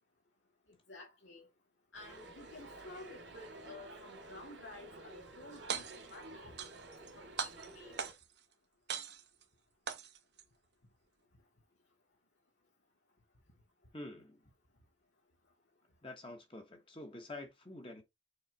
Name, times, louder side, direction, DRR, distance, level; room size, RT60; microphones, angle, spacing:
voice 1, 0.9-1.5 1.9-6.6 7.0-8.0, left 2 dB, 85° left, 2.3 m, -52 dB
sound 1, 1.9-8.1, right 2 dB, 85° right, 2.3 m, -52 dB
sound 2, 5.6-6.2 6.6-7.1 7.4-8.4 8.9-9.4 9.9-10.4, right 6 dB, 65° right, 1.0 m, -40 dB
voice 2, 13.9-14.4 16.0-18.0, left 2 dB, 30° left, 1.3 m, -47 dB
6.5 x 4.0 x 4.1 m
head